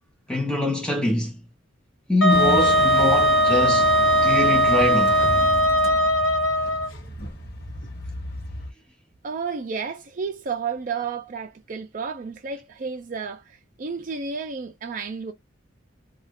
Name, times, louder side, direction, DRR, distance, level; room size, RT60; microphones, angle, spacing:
voice 1, 0.3-1.4 2.1-3.9 4.2-5.2, left 2 dB, 5° left, 0.7 m, -24 dB
Wind instrument woodwind instrument, 2.2-6.9, equal, 90° left, 0.8 m, -19 dB
sound 1, 2.3-8.7, left 1 dB, 55° left, 0.9 m, -33 dB
voice 2, 9.2-15.3, right 5 dB, 45° right, 0.5 m, -32 dB
2.4 x 2.3 x 3.4 m
head